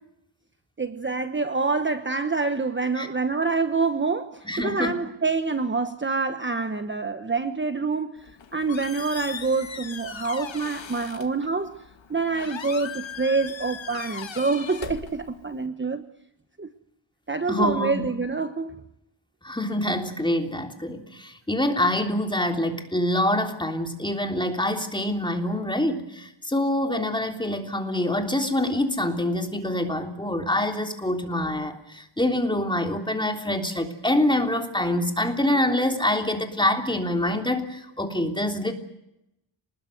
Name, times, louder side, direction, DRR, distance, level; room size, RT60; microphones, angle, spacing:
voice 1, 0.8-11.7 12.1-16.0 16.6-16.7 17.3-18.7, right 4 dB, 25° right, 1.1 m, -26 dB
voice 2, 4.4-4.9 17.5-18.1 19.4-38.7, left 1 dB, 10° left, 3.4 m, -25 dB
Squeak, 8.2-15.7, left 7 dB, 85° left, 2.0 m, -39 dB
28.0 x 20.5 x 7.9 m
wide cardioid pair, 135°, 44 cm